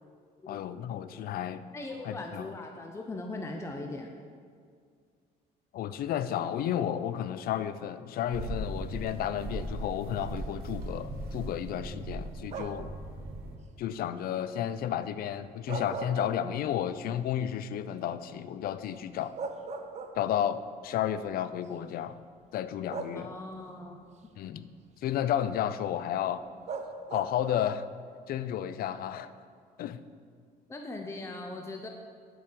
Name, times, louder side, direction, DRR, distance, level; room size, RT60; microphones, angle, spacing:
voice 1, 0.5-1.6 2.0-2.5 5.7-12.9 13.8-19.3 20.1-22.2 22.5-23.3 24.4-24.7 25.0-26.4 27.1-27.8 28.3-29.3 29.8-30.0, left 10 dB, 60° left, 13 dB, 0.5 m, -32 dB
voice 2, 1.7-4.1 23.1-24.0 30.7-31.9, left 2 dB, 15° left, 3 dB, 0.7 m, -40 dB
sound 1, 8.3-13.6, right 2 dB, 65° right, 1.4 m, -38 dB
sound 2, 12.5-13.0 15.5-16.9 17.3-17.4 18.9-19.0 19.4-20.5 21.5-21.7 22.9-23.6 26.7-27.5, right 4 dB, 40° right, 0.7 m, -39 dB
7.7 x 5.1 x 7.4 m, 2.1 s
cardioid pair, 110°, 17 cm